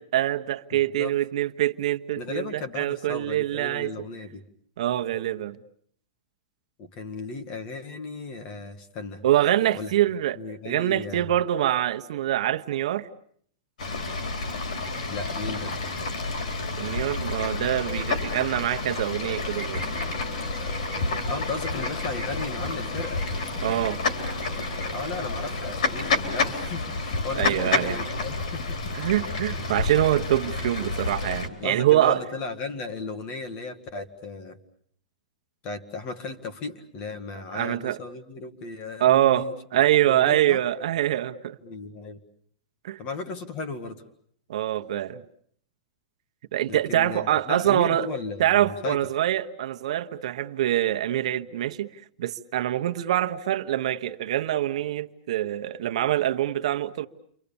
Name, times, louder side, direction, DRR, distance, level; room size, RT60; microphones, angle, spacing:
voice 1, 0.0-3.9 4.8-5.6 9.2-10.4 10.6-13.1 16.7-19.8 23.6-24.0 27.3-28.0 28.9-32.2 37.5-38.0 39.0-39.4 39.7-41.6 42.8-43.0 44.5-45.2 46.5-48.1 48.4-51.9 52.2-57.1, right 12 dB, 60° right, 1.0 m, -24 dB
voice 2, 0.7-1.1 2.2-4.4 6.8-9.2 9.7-9.9 10.4-11.3 15.1-15.8 21.3-23.2 24.9-29.0 31.6-34.6 35.6-39.5 40.1-40.6 41.6-42.2 43.0-44.0 46.7-49.0, left 3 dB, 30° left, 1.9 m, -35 dB
Fowl / Bird, 13.8-31.5, left 3 dB, 90° left, 3.9 m, -29 dB
sound 1, 19.2-26.6, right 5 dB, ahead, 3.7 m, -46 dB
29.5 x 24.5 x 7.1 m
supercardioid pair, 170°, 4 cm